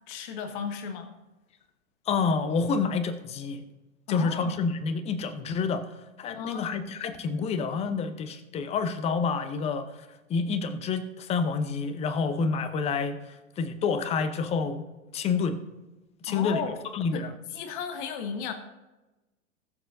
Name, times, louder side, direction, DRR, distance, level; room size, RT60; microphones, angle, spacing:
voice 1, 0.1-1.1 4.1-4.6 6.3-6.9 16.3-16.8 17.1-18.5, left 6 dB, 35° left, 7 dB, 1.3 m, -35 dB
voice 2, 2.1-3.6 4.1-5.9 6.2-9.9 10.3-13.2 13.6-14.8 15.1-15.6 16.2-16.6 16.9-17.3, left 5 dB, 15° left, 10 dB, 0.7 m, -28 dB
21.0 x 7.2 x 2.6 m, 1.1 s
figure-of-eight pair, 100°, 42 cm